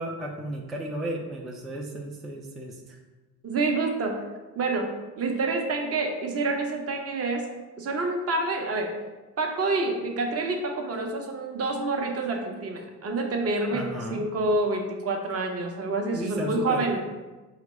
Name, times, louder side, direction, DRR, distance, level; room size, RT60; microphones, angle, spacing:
voice 1, 0.0-3.0 13.7-14.3 16.1-17.0, right 1 dB, ahead, -1 dB, 0.4 m, -34 dB
voice 2, 3.4-4.2 4.6-7.5 7.8-9.0 9.4-17.0, right 3 dB, 30° right, 3 dB, 0.8 m, -28 dB
4.9 x 2.9 x 3.1 m, 1.2 s
hypercardioid pair, 65°, 48 cm